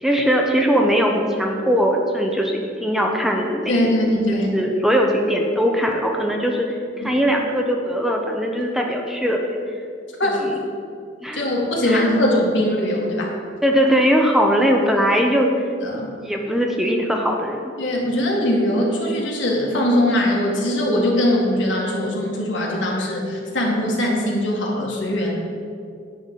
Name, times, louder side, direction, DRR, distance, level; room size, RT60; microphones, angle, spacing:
voice 1, 0.0-3.8 4.5-9.6 10.2-10.5 11.2-11.4 11.8-12.0 13.6-15.5 15.9-17.6, equal, ahead, 1 dB, 0.7 m, -20 dB
voice 2, 3.7-4.5 7.0-7.1 10.2-10.4 11.3-13.3 15.8-16.1 17.8-25.3, left 1 dB, 75° left, -2 dB, 1.9 m, -21 dB
9.8 x 3.9 x 7.4 m, 2.3 s
head